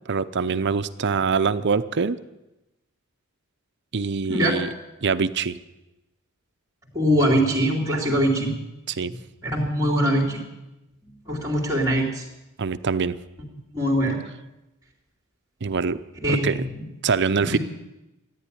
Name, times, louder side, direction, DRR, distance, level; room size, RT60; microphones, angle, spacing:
voice 1, 0.1-2.2 3.9-4.7 5.0-5.6 8.9-9.1 12.6-13.2 15.6-16.0 16.3-16.6 17.0-17.6, right 5 dB, 50° right, 13 dB, 0.6 m, -24 dB
voice 2, 4.3-4.6 6.9-8.5 9.1-9.2 9.4-10.4 11.0-12.3 13.7-14.2 16.2-16.8 17.4-17.6, equal, 15° right, -3 dB, 2.7 m, -23 dB
14.0 x 9.7 x 10.0 m, 0.98 s
head